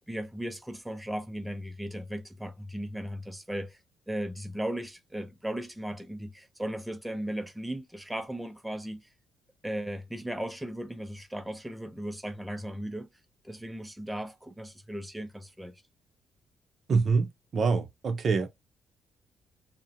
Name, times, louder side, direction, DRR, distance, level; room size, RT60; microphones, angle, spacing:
voice 1, 0.1-3.8 4.1-9.1 9.6-13.1 13.4-15.8, right 1 dB, 5° right, 0.4 m, -36 dB
voice 2, 16.9-18.5, right 4 dB, 50° right, 0.6 m, -26 dB
2.6 x 2.0 x 2.8 m
cardioid pair, 90°, 0 cm